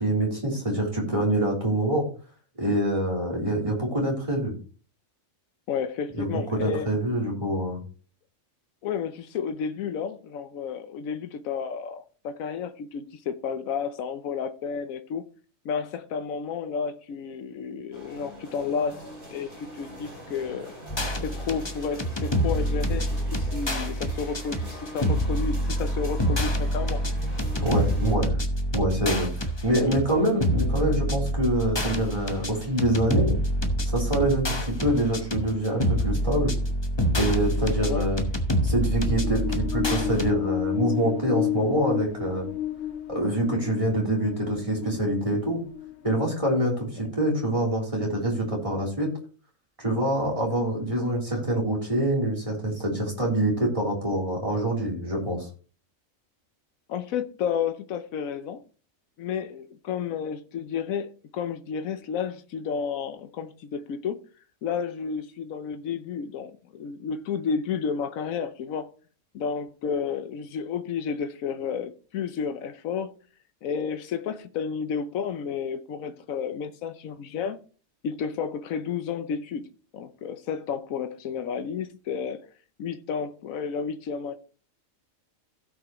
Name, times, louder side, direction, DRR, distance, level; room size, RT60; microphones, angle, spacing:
voice 1, 0.0-2.0 2.6-4.5 6.1-7.8 27.6-28.3 28.7-33.4 33.8-36.5 37.1-38.2 38.6-42.4 43.1-45.6 46.0-49.1 49.8-55.5, right 1 dB, 25° right, 3.6 m, -25 dB
voice 2, 5.7-6.9 8.8-15.2 15.6-19.0 19.3-20.7 21.2-27.0 29.2-29.3 29.7-30.0 37.8-38.1 56.9-58.6 59.2-64.2 64.6-68.9 69.3-73.2 73.6-77.6 78.0-79.7 79.9-82.4 82.8-84.3, left 6 dB, 80° left, 1.2 m, -31 dB
sound 1, 17.9-28.1, equal, 55° right, 5.1 m, -43 dB
sound 2, 20.9-40.3, equal, 20° left, 1.0 m, -27 dB
sound 3, 39.0-46.6, left 11 dB, 60° left, 0.7 m, -32 dB
16.5 x 5.9 x 3.0 m
omnidirectional pair, 1.4 m